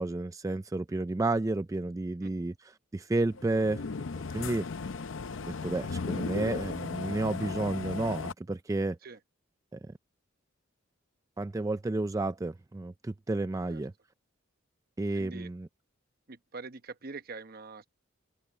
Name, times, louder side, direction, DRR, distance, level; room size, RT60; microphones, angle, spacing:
voice 1, 0.0-2.5 2.9-3.8 4.3-4.7 5.6-9.0 9.7-9.8 11.4-13.9 15.0-15.7, right 2 dB, 15° right, 0.3 m, -31 dB
sound 1, 3.3-8.3, left 4 dB, 70° left, 0.6 m, -36 dB
voice 2, 15.1-15.5 16.3-17.9, right 4 dB, 50° right, 1.0 m, -44 dB
open air
head